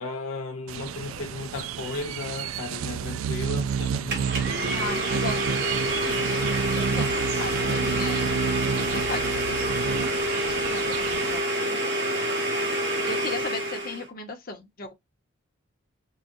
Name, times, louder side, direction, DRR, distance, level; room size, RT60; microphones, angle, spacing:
voice 1, 0.0-4.2, left 3 dB, 70° left, 0.5 m, -35 dB
sound 1, 0.7-11.4, right 7 dB, 70° right, 0.3 m, -30 dB
voice 2, 0.8-1.2 4.7-5.4 5.8-6.4 6.7-8.3 8.8-11.9 13.1-14.9, left 3 dB, 45° left, 0.9 m, -37 dB
Domestic sounds home sounds, 4.1-14.1, right 1 dB, 50° right, 1.7 m, -27 dB
4.7 x 2.3 x 2.6 m
head